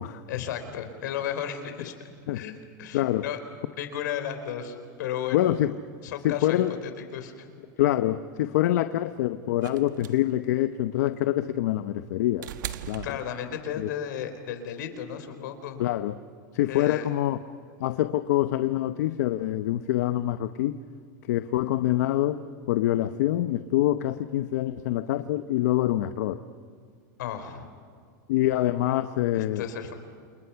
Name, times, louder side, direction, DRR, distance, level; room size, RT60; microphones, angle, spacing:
voice 1, 0.3-1.9 2.3-3.4 3.7-5.5 6.0-7.4 13.0-15.8 16.7-17.1 27.2-27.7 29.3-29.9, left 9 dB, 75° left, 8 dB, 4.1 m, -34 dB
voice 2, 2.9-3.3 5.3-5.8 6.2-6.7 7.8-12.5 12.9-13.2 13.8-13.9 15.8-16.1 16.5-17.4 17.8-20.8 21.3-26.4 28.3-29.6, left 14 dB, 60° left, 10 dB, 0.8 m, -25 dB
sound 1, 9.6-13.9 15.1-15.2, right 12 dB, 80° right, 1.3 m, -40 dB
30.0 x 29.0 x 5.8 m, 2.1 s
supercardioid pair, 175°, 10 cm